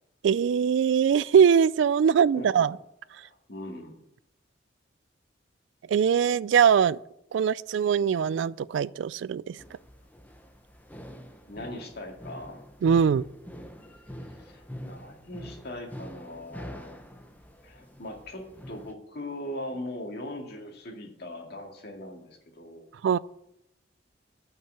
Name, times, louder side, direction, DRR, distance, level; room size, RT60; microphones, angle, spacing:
voice 1, 0.2-2.7 5.9-7.0 7.3-9.6 12.8-13.2 23.0-23.2, right 7 dB, 75° right, 0.3 m, -22 dB
voice 2, 2.0-2.7 3.1-3.9 11.5-12.6 14.2-17.0 17.6-22.9, left 1 dB, 60° left, 2.1 m, -40 dB
sound 1, 9.6-18.9, equal, 10° left, 0.9 m, -45 dB
9.1 x 5.6 x 7.5 m
head